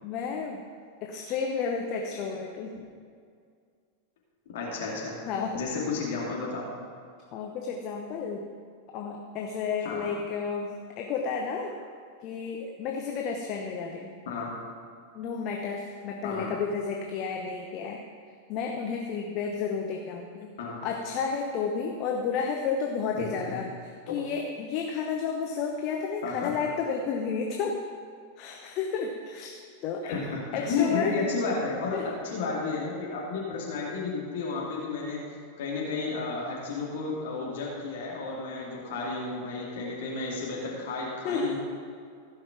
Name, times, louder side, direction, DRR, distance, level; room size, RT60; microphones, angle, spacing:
voice 1, 0.0-0.6 1.0-2.7 5.3-5.6 7.3-8.4 8.9-11.7 12.2-14.2 15.1-18.0 18.5-20.5 20.8-27.8 28.4-29.5 29.8-30.2 30.5-31.2 31.9-32.1 41.2-41.6, left 5 dB, 40° left, 1 dB, 1.0 m, -31 dB
voice 2, 4.5-5.2 5.5-6.8 9.8-10.1 14.3-14.5 16.2-16.5 20.6-20.8 23.5-23.6 24.1-24.2 26.2-26.5 30.0-30.4 30.7-35.2 35.6-41.7, left 4 dB, 55° left, -4 dB, 2.5 m, -32 dB
16.0 x 5.7 x 5.9 m, 2.2 s
figure-of-eight pair, 90°, 0 cm